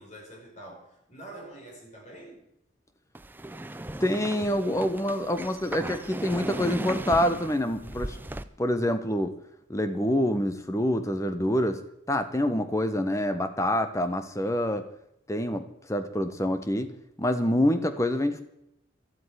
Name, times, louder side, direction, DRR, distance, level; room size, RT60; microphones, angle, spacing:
voice 1, 0.0-2.5, right 1 dB, 35° left, -1 dB, 5.5 m, -46 dB
sound 1, 3.1-8.4, right 1 dB, 10° right, 0.5 m, -36 dB
voice 2, 4.0-8.2 8.6-9.3 9.7-11.8 12.1-14.8 15.3-16.9 17.2-18.4, left 1 dB, 15° left, 9 dB, 1.2 m, -26 dB
12.5 x 8.1 x 9.8 m, 0.80 s
head